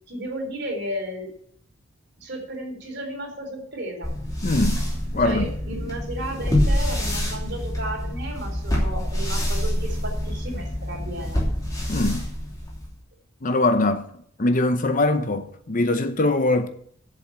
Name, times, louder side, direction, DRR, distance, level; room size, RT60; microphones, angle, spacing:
voice 1, 0.1-1.3 2.2-4.1 5.2-11.4, right 1 dB, 55° right, 3.9 m, -33 dB
sound 1, 4.0-12.9, left 1 dB, 20° left, 2.7 m, -26 dB
voice 2, 4.4-4.8 5.1-5.4 11.9-12.3 13.4-14.1 14.4-16.7, left 2 dB, 40° left, 0.8 m, -22 dB
7.6 x 7.6 x 8.6 m
head